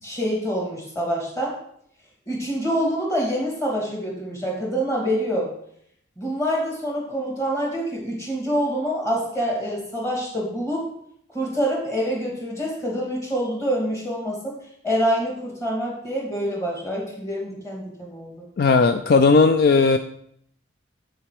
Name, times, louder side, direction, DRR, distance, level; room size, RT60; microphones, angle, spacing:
voice 1, 0.0-1.5 2.3-5.5 6.2-10.8 11.3-14.5 14.8-18.4, equal, 15° left, -3 dB, 2.4 m, -26 dB
voice 2, 18.6-20.0, left 4 dB, 55° left, 8 dB, 0.3 m, -16 dB
9.0 x 4.6 x 4.8 m, 0.69 s
head